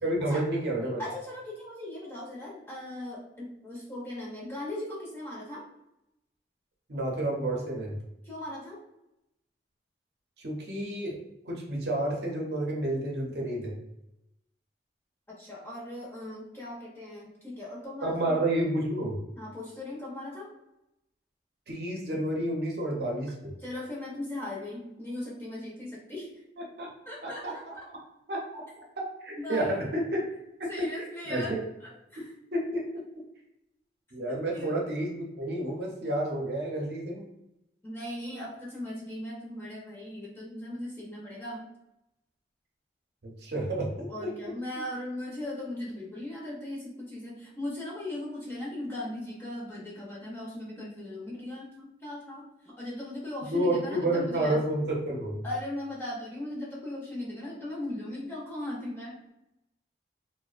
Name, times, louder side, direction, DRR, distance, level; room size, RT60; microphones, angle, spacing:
voice 1, 0.0-1.0 6.9-8.0 10.4-11.2 11.5-13.8 18.0-19.2 21.7-23.5 26.8-26.9 27.2-27.7 28.3-30.3 30.6-30.9 31.3-31.6 32.5-32.8 34.1-37.3 43.2-44.3 53.5-55.4, right 1 dB, 65° right, -1 dB, 0.6 m, -30 dB
voice 2, 1.0-5.6 8.2-8.8 15.3-18.3 19.4-20.5 23.6-26.3 27.1-27.8 29.4-29.9 30.7-31.6 32.1-32.3 34.3-34.8 37.8-41.7 44.1-54.6 55.4-59.3, left 1 dB, 15° left, -5 dB, 0.5 m, -38 dB
2.5 x 2.1 x 2.4 m, 0.87 s
head